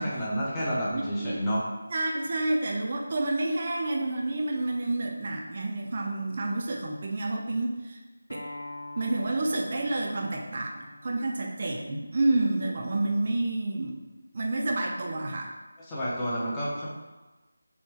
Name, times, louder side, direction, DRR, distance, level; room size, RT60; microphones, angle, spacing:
voice 1, 0.0-1.6 15.9-16.9, equal, 10° left, -8 dB, 0.5 m, -29 dB
voice 2, 0.9-1.4 1.9-8.0 8.3-8.5 9.0-14.0 14.3-15.5, right 2 dB, 40° right, 1 dB, 0.3 m, -29 dB
Acoustic guitar, 8.3-13.5, left 1 dB, 70° left, 0.4 m, -46 dB
3.5 x 2.1 x 2.8 m, 1.2 s
figure-of-eight pair, 170°, 0 cm